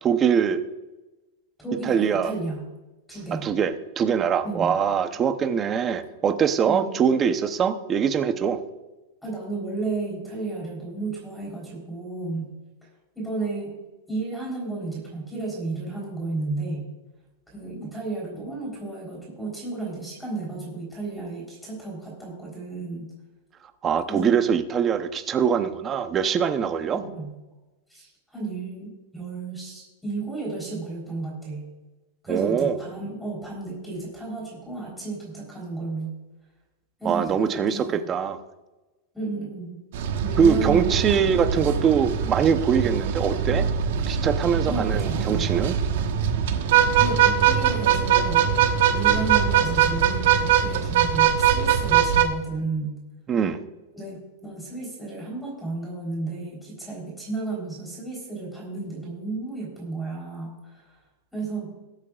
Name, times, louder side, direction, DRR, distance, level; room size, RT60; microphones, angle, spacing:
voice 1, 0.0-0.6 1.8-2.3 3.3-8.6 23.8-27.0 32.3-32.8 37.0-38.4 40.4-43.7 44.1-45.8 53.3-53.6, right 7 dB, 20° right, 9 dB, 0.8 m, -23 dB
voice 2, 1.6-2.7 3.1-3.5 4.4-4.8 6.6-7.1 9.2-12.5 13.1-13.8 14.1-16.9 17.5-23.1 24.1-24.4 26.9-27.3 27.9-31.7 32.2-36.1 37.0-38.0 39.1-39.8 40.2-41.3 41.6-41.7 44.7-45.5 46.9-48.5 48.9-53.0 53.9-61.0 61.3-61.7, right 3 dB, ahead, -3 dB, 3.8 m, -33 dB
sound 1, 39.9-52.2, right 9 dB, 65° right, 1.3 m, -22 dB
21.5 x 8.5 x 2.4 m, 1.1 s
supercardioid pair, 155°, 0 cm